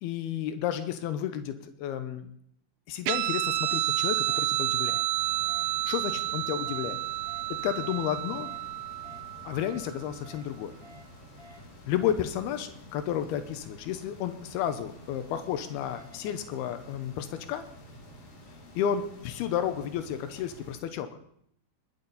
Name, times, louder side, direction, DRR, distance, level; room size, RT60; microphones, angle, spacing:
voice 1, 0.0-2.3 2.9-5.0 5.9-7.0 7.6-8.5 9.4-10.8 11.9-17.6 18.8-21.1, left 10 dB, 85° left, 9 dB, 2.3 m, -32 dB
sound 1, 3.0-3.2 3.6-3.8 4.2-4.4 4.8-5.0 5.5-5.6 6.6-6.8 7.2-7.4 7.8-8.0 8.4-8.6 9.0-9.2 9.6-9.8 10.2-10.4 10.8-11.0 11.4-11.6 12.0-12.1 15.0-16.3, equal, 25° right, 1.4 m, -53 dB
Guitar, 3.1-10.0, right 16 dB, 90° right, 3.2 m, -30 dB
sound 2, 5.1-20.8, left 1 dB, 50° left, 3.5 m, -50 dB
20.5 x 8.7 x 4.1 m, 0.70 s
omnidirectional pair, 5.6 m